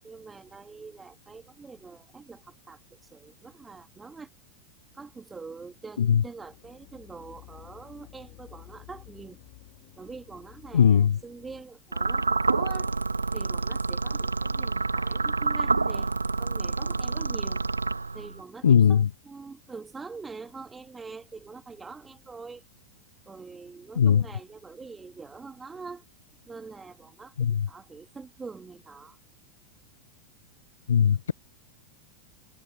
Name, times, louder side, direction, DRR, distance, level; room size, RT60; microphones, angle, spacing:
voice 1, 0.0-4.3 4.9-9.4 10.0-12.9 13.3-17.6 18.1-22.6 23.3-26.1 26.5-29.2, right 4 dB, 15° right, 3.1 m, -44 dB
sound 1, 6.3-11.6, left 30 dB, 45° left, 4.5 m, -52 dB
voice 2, 10.7-11.1 18.6-19.0 24.0-24.2 27.4-27.6 30.9-31.3, left 7 dB, 70° left, 0.7 m, -19 dB
sound 2, 11.9-18.4, right 3 dB, 80° right, 0.4 m, -28 dB
figure-of-eight pair, 90°, 0 cm